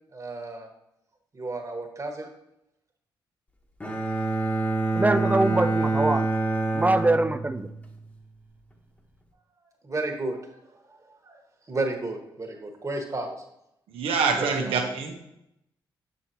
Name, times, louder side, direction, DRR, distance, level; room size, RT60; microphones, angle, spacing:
voice 1, 0.1-0.7 1.3-2.3 9.8-10.6 11.2-11.4 11.7-13.3 14.4-14.5, right 2 dB, 35° right, 3 dB, 1.6 m, -32 dB
Bowed string instrument, 3.8-7.9, right 2 dB, 15° left, 1.3 m, -26 dB
voice 2, 4.9-6.3 6.7-7.7, right 2 dB, 15° right, 12 dB, 0.5 m, -23 dB
voice 3, 13.9-15.1, right 5 dB, 80° right, 3 dB, 1.1 m, -25 dB
6.8 x 6.7 x 2.9 m, 0.82 s
supercardioid pair, 55°, 9 cm